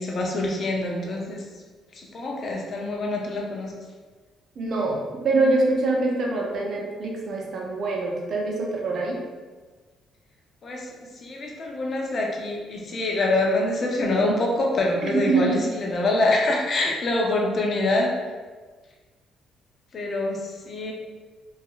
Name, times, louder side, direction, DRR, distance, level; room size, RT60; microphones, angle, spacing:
voice 1, 0.0-1.4 1.9-3.8 10.6-18.1 19.9-20.9, left 2 dB, 50° left, -1 dB, 0.5 m, -25 dB
voice 2, 4.6-5.0 5.2-9.2 15.0-15.6, right 3 dB, 60° right, -1 dB, 0.6 m, -24 dB
2.6 x 2.4 x 2.3 m, 1.4 s
supercardioid pair, 60°, 0 cm